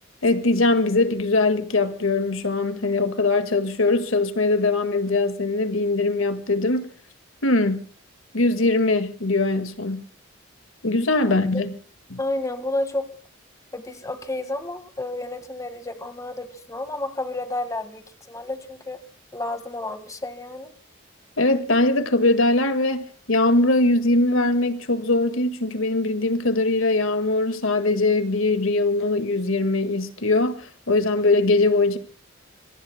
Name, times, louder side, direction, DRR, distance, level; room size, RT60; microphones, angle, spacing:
voice 1, 0.2-6.9 7.4-7.9 8.3-10.1 10.8-11.7 12.1-12.2 21.4-32.0, left 2 dB, 85° left, 1.8 m, -21 dB
voice 2, 12.2-13.1 13.7-19.0 19.3-20.7, left 2 dB, 15° left, 1.7 m, -31 dB
26.5 x 23.0 x 2.2 m
head